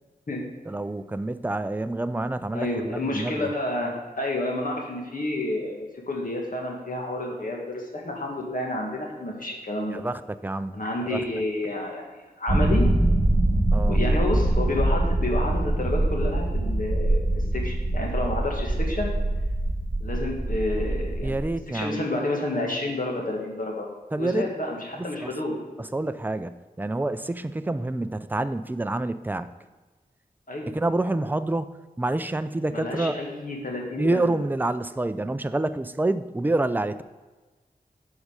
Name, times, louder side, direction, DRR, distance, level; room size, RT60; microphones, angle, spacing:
voice 1, 0.7-3.5 9.9-10.7 11.1-11.2 13.7-14.0 21.2-22.0 24.1-24.5 25.0-25.3 25.8-29.5 30.7-31.7 32.0-33.2 34.0-37.0, right 2 dB, 10° right, 11 dB, 0.4 m, -27 dB
voice 2, 2.5-10.0 10.7-12.9 13.8-17.2 17.5-19.1 20.0-21.4 21.7-23.9 24.2-25.5 30.5-30.7 32.7-34.4, left 1 dB, 60° left, -1 dB, 2.0 m, -30 dB
sound 1, 12.5-21.4, right 1 dB, 40° right, 3.3 m, -24 dB
9.5 x 5.5 x 5.1 m, 1.3 s
wide cardioid pair, 65°, 16 cm